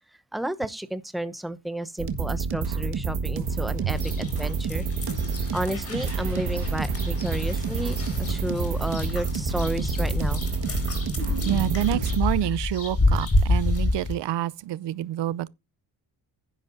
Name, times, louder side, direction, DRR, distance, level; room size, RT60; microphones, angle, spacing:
voice 1, 0.3-4.8 5.5-10.4, right 1 dB, ahead, 0.8 m, -32 dB
sound 1, 2.0-12.2, right 5 dB, 65° right, 1.7 m, -29 dB
sound 2, 3.4-11.1, left 1 dB, 20° left, 3.1 m, -40 dB
sound 3, 3.9-14.1, left 2 dB, 35° left, 3.9 m, -29 dB
voice 2, 11.4-15.5, right 13 dB, 80° right, 0.7 m, -27 dB
11.0 x 10.5 x 2.6 m
cardioid pair, 105°, 41 cm